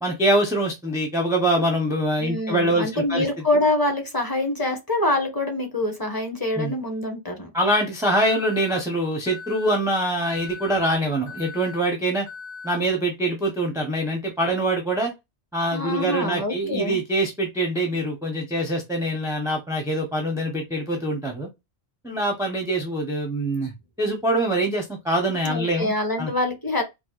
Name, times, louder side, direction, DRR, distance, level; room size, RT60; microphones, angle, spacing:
voice 1, 0.0-3.3 6.6-6.8 7.5-12.3 12.6-15.1 15.5-21.5 22.0-23.7 24.0-25.9 26.2-26.3, right 1 dB, 5° right, 0.5 m, -24 dB
voice 2, 2.2-7.5 15.7-17.0 25.4-26.8, left 1 dB, 20° left, 1.0 m, -25 dB
Alarm, 8.3-8.8 9.3-9.8 10.3-10.8 11.3-11.8 12.3-12.8, left 4 dB, 70° left, 1.7 m, -39 dB
4.6 x 2.3 x 2.3 m
omnidirectional pair, 1.1 m